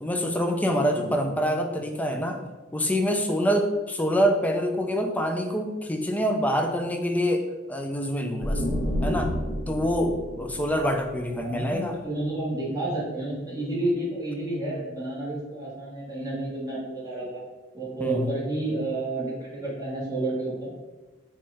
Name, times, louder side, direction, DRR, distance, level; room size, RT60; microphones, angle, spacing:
voice 1, 0.0-2.4 2.7-8.6 9.0-9.3 9.7-12.0 18.0-18.3, equal, 10° left, 4 dB, 0.4 m, -26 dB
sound 1, 8.4-12.0, equal, 30° left, 1.0 m, -30 dB
voice 2, 11.3-17.4 17.7-20.7, right 2 dB, 20° right, -7 dB, 1.2 m, -30 dB
4.3 x 2.3 x 4.7 m, 1.2 s
head